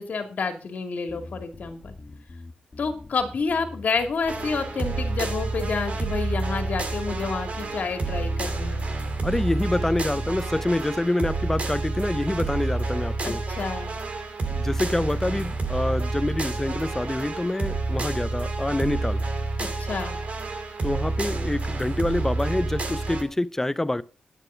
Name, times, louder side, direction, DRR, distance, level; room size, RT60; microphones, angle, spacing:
voice 1, 0.0-1.9 2.8-8.8 13.2-14.0 19.6-20.2, left 4 dB, 65° left, 2.4 m, -29 dB
Bass guitar, 1.1-10.7, left 1 dB, 35° left, 1.8 m, -44 dB
sound 1, 4.3-23.2, right 3 dB, 55° right, 2.8 m, -29 dB
voice 2, 9.2-13.4 14.5-19.2 20.8-24.0, left 1 dB, 15° left, 0.6 m, -26 dB
11.0 x 9.3 x 5.7 m
wide cardioid pair, 105°, 3 cm